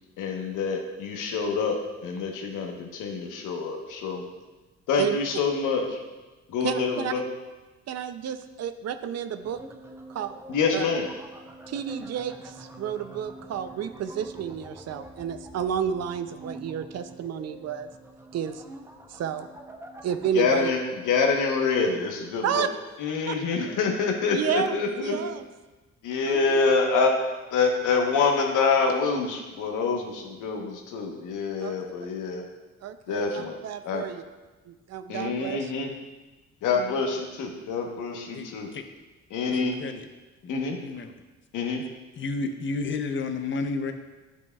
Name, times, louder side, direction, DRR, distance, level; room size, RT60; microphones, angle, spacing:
voice 1, 0.2-4.2 4.9-6.0 6.5-7.2 10.5-11.1 20.3-22.7 23.0-25.2 26.0-27.2 27.5-32.4 33.1-33.6 33.8-34.0 35.1-35.9 36.6-38.7 39.3-39.8 40.5-40.8 41.5-41.8, left 4 dB, 85° left, 2 dB, 1.1 m, -26 dB
voice 2, 6.6-7.1 7.9-9.6 10.1-10.4 10.7-10.9 11.7-17.9 18.3-18.6 19.1-19.5 20.0-20.7 22.4-22.7 23.3-23.4 24.3-25.4 26.3-26.7 31.6-31.7 32.8-34.2 34.7-35.7 36.8-36.9, right 8 dB, 55° right, 10 dB, 0.5 m, -31 dB
sound 1, 9.4-20.7, right 2 dB, 10° right, 0.7 m, -45 dB
voice 3, 39.5-40.1 40.4-40.5 40.8-41.1 42.2-43.9, left 4 dB, 40° left, 7 dB, 0.7 m, -31 dB
10.0 x 6.2 x 2.3 m, 1.2 s
cardioid pair, 90°, 30 cm